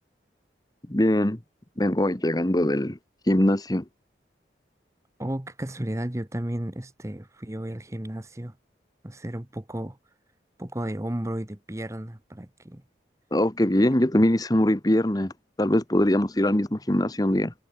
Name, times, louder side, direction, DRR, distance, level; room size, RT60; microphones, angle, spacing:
voice 1, 0.9-1.4 1.8-3.0 3.3-3.8 13.3-15.3 15.6-17.5, left 1 dB, 20° left, 1.1 m, -22 dB
voice 2, 5.2-8.6 9.0-10.0 10.6-12.8 13.8-13.9, right 1 dB, 15° right, 0.9 m, -33 dB
head